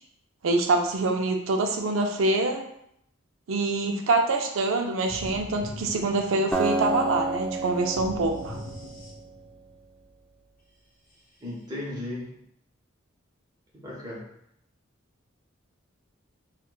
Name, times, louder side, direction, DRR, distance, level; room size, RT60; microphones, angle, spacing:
voice 1, 0.4-2.7 3.5-8.6, right 2 dB, 75° right, 3 dB, 0.4 m, -25 dB
sound 1, 5.1-6.8 7.9-9.6, left 1 dB, 40° left, 0.8 m, -41 dB
Acoustic guitar, 6.5-9.7, right 2 dB, 5° left, 0.4 m, -30 dB
voice 2, 11.4-12.3 13.7-14.3, left 1 dB, 20° right, -5 dB, 1.0 m, -35 dB
4.4 x 2.3 x 2.3 m, 0.73 s
head